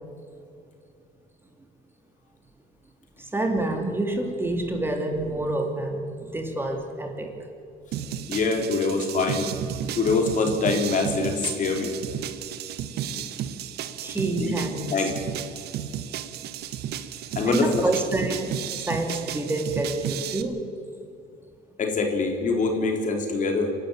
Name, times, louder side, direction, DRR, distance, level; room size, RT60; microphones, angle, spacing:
voice 1, 3.2-6.0 6.3-7.3 14.0-14.8 17.5-18.6 18.9-20.7, right 2 dB, 15° right, 3 dB, 2.7 m, -27 dB
sound 1, 7.9-20.4, right 9 dB, 75° right, 1.3 m, -33 dB
voice 2, 8.3-9.5 10.0-11.9 14.4-14.6 14.9-15.2 17.4-17.9 21.8-23.7, left 4 dB, 50° left, 3 dB, 4.0 m, -24 dB
27.0 x 12.0 x 9.6 m, 2.5 s
cardioid pair, 110°, 17 cm